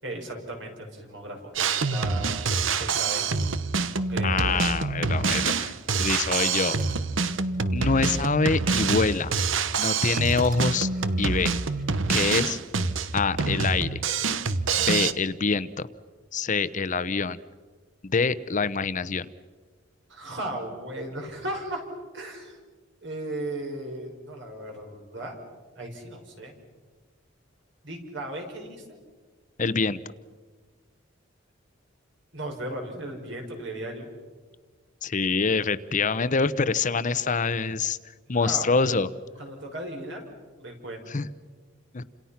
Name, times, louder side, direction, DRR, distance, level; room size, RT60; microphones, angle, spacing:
voice 1, 0.0-3.2 4.1-4.6 20.1-21.8 22.1-22.6 23.0-25.4 25.8-26.5 27.8-28.8 32.3-34.1 38.4-38.7 39.4-40.2 40.6-41.1, right 1 dB, 65° right, 2 dB, 6.0 m, -36 dB
Drum kit, 1.6-15.1, right 4 dB, 85° right, 1.1 m, -26 dB
voice 2, 4.2-5.7 6.0-6.8 7.7-9.3 9.8-10.9 11.2-11.5 12.1-12.6 13.1-14.1 14.9-15.9 16.3-17.4 18.0-19.3 29.6-30.0 35.0-38.0 38.3-39.1 41.1-41.3 41.9-42.0, left 4 dB, 40° left, 14 dB, 0.8 m, -25 dB
sound 1, 6.7-7.1 8.3-8.4 8.9-9.0 10.3-11.8, right 4 dB, 45° right, 4.4 m, -50 dB
30.0 x 27.5 x 5.9 m, 1.4 s
head